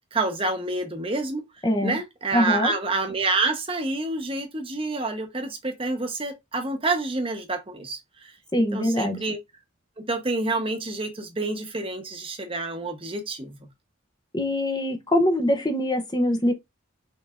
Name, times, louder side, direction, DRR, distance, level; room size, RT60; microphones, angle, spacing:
voice 1, 0.1-1.4 1.8-9.4 10.0-13.6, right 3 dB, 25° right, 0.9 m, -28 dB
voice 2, 1.6-2.0 2.3-2.7 8.5-9.2 14.3-16.5, left 1 dB, 20° left, 0.7 m, -23 dB
5.5 x 3.5 x 2.5 m
head